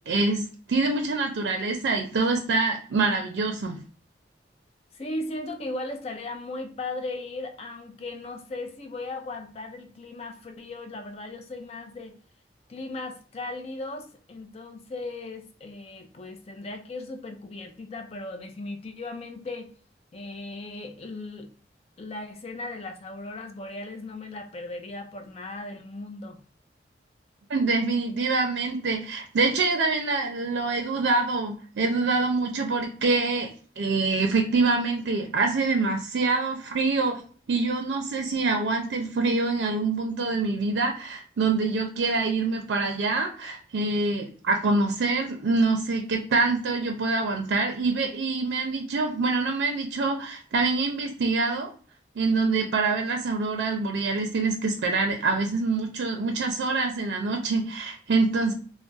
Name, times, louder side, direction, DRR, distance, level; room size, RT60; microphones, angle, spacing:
voice 1, 0.1-3.8 27.5-33.5 33.8-37.2 37.5-51.7 52.2-58.5, right 3 dB, 85° right, 4 dB, 0.4 m, -25 dB
voice 2, 4.9-12.2 12.7-19.7 20.1-21.5 22.0-26.4, left 2 dB, 35° left, 5 dB, 0.4 m, -37 dB
2.3 x 2.1 x 3.8 m, 0.42 s
head